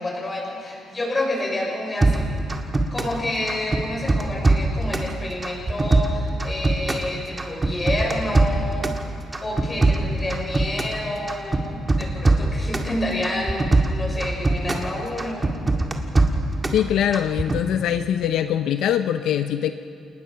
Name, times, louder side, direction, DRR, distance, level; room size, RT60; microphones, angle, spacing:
voice 1, 0.0-2.3 2.9-8.9 9.4-15.5, left 1 dB, 20° left, -2 dB, 6.3 m, -29 dB
sound 1, 2.0-3.2 3.5-5.1 5.4-7.1 7.4-9.0 9.3-11.0 11.3-12.9 13.2-14.9 15.2-16.8 17.1-17.6, right 2 dB, 20° right, 1.8 m, -21 dB
voice 2, 16.7-19.7, left 10 dB, 80° left, 9 dB, 0.7 m, -22 dB
28.5 x 19.5 x 5.8 m, 2.5 s
cardioid pair, 130°, 0 cm